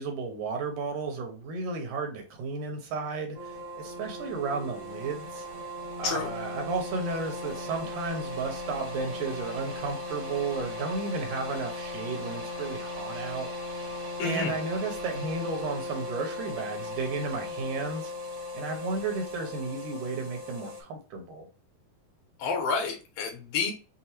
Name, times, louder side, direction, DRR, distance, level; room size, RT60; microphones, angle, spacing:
voice 1, 0.0-5.5 6.0-13.5 14.2-18.1 18.5-21.5, right 4 dB, 75° right, 3 dB, 2.2 m, -33 dB
sound 1, 3.3-20.8, left 2 dB, 30° right, 0.9 m, -37 dB
voice 2, 14.2-14.5 22.4-23.7, left 5 dB, 80° left, 2 dB, 3.0 m, -29 dB
6.5 x 2.2 x 2.9 m, 0.34 s
omnidirectional pair, 4.1 m